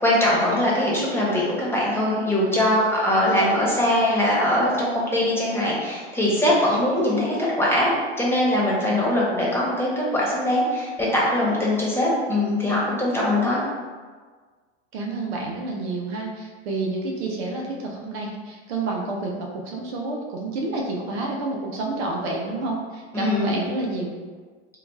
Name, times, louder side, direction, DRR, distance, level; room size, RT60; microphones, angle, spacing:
voice 1, 0.0-13.6 23.1-23.5, left 1 dB, 5° left, -5 dB, 1.1 m, -22 dB
voice 2, 14.9-24.1, right 2 dB, 80° right, -1 dB, 0.7 m, -29 dB
2.8 x 2.3 x 3.5 m, 1.5 s
hypercardioid pair, 90°, 31 cm